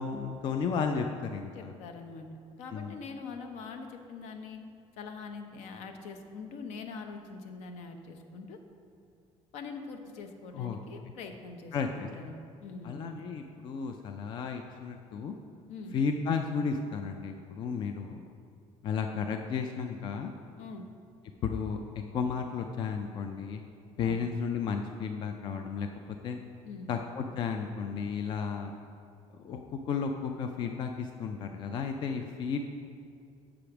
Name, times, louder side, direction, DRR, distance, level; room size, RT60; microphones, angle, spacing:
voice 1, 0.0-1.7 2.7-3.0 10.5-10.8 11.7-12.1 12.8-15.4 15.9-18.3 18.8-20.3 21.4-21.8 22.1-23.6 24.0-26.4 26.9-28.7 29.4-32.7, left 6 dB, 40° left, 5 dB, 0.4 m, -33 dB
voice 2, 1.5-2.3 2.6-4.6 5.0-8.6 9.5-13.2 15.7-16.0 20.6-20.9 24.0-24.3 26.6-26.9, left 4 dB, 70° left, 6 dB, 0.7 m, -43 dB
7.0 x 5.0 x 5.8 m, 2.4 s
cardioid pair, 160°, 12 cm